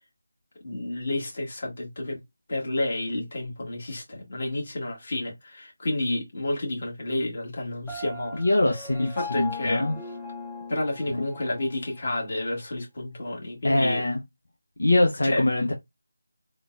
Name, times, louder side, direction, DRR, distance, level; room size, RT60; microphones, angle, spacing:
voice 1, 0.6-2.2 2.5-8.4 9.0-9.9 10.7-14.0 15.2-15.4, left 1 dB, 45° left, 1.4 m, -30 dB
Piano, 7.9-11.7, left 3 dB, 10° left, 0.7 m, -39 dB
voice 2, 8.4-9.9 11.1-11.2 13.6-14.2 14.8-15.7, left 1 dB, 70° left, 0.6 m, -23 dB
3.7 x 2.2 x 2.4 m
figure-of-eight pair, 160°, 0 cm